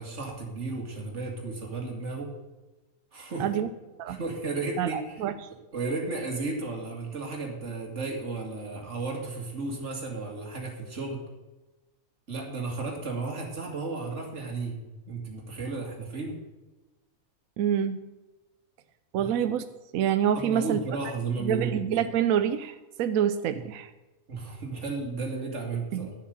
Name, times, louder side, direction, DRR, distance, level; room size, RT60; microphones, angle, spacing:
voice 1, 0.0-2.3 3.1-3.5 4.1-5.2 5.7-11.2 12.3-14.8 15.1-16.4 19.2-19.3 20.3-21.8 24.3-26.1, right 3 dB, 55° right, -1 dB, 2.6 m, -33 dB
voice 2, 3.4-3.7 4.0-4.2 4.8-5.3 17.6-18.0 19.1-19.6 19.9-20.8 21.4-23.9 25.9-26.1, right 9 dB, 75° right, 11 dB, 1.0 m, -26 dB
11.5 x 7.3 x 6.5 m, 1.1 s
omnidirectional pair, 1.5 m